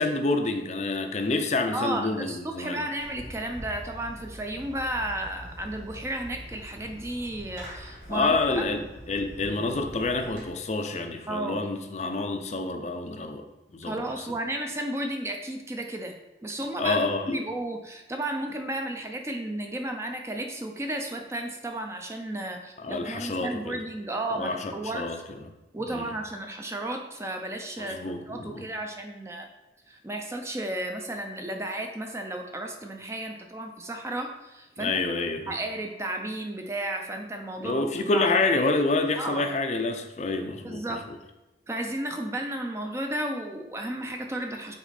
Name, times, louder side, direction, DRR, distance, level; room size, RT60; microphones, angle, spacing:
voice 1, 0.0-2.8 8.1-8.8 9.1-13.4 13.7-14.0 16.8-17.4 22.8-23.8 24.3-25.2 25.9-26.1 27.8-28.7 34.8-35.6 37.6-40.8, left 3 dB, 40° left, 6 dB, 0.5 m, -28 dB
voice 2, 1.7-8.6 11.3-11.7 13.8-25.1 25.7-29.5 29.9-34.9 35.5-37.8 38.1-38.3 39.2-39.5 40.6-41.0 41.7-44.7, right 1 dB, 15° right, 4 dB, 0.5 m, -33 dB
Fireworks, 3.0-10.4, equal, 70° right, 2.2 m, -43 dB
6.0 x 4.3 x 4.1 m, 1.0 s
head